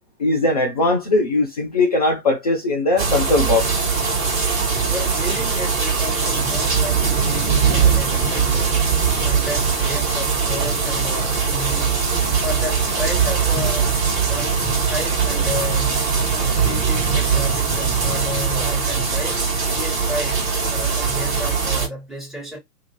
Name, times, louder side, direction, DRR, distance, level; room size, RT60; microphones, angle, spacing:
voice 1, 0.2-3.7, left 2 dB, 25° left, 0.4 m, -19 dB
sound 1, 3.0-21.9, right 5 dB, 20° right, 1.2 m, -21 dB
voice 2, 4.9-12.0 12.4-14.0 14.2-19.4 19.7-22.6, left 1 dB, ahead, 1.4 m, -32 dB
2.7 x 2.4 x 3.0 m
figure-of-eight pair, 125°, 49 cm